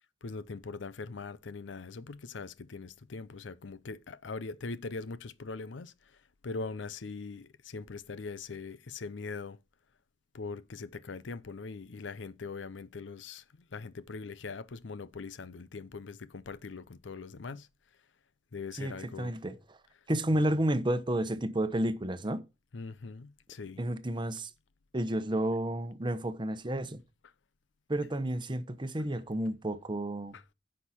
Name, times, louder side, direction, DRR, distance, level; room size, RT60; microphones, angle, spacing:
voice 1, 0.2-6.2 6.4-9.6 10.3-13.4 13.7-17.7 18.5-19.3 20.3-20.4 22.7-23.8 30.3-30.5, left 4 dB, 80° left, 0.6 m, -41 dB
voice 2, 18.8-19.8 20.1-22.4 23.8-24.5 24.9-27.0 27.9-30.4, right 1 dB, 25° right, 0.9 m, -31 dB
10.0 x 6.5 x 4.3 m
head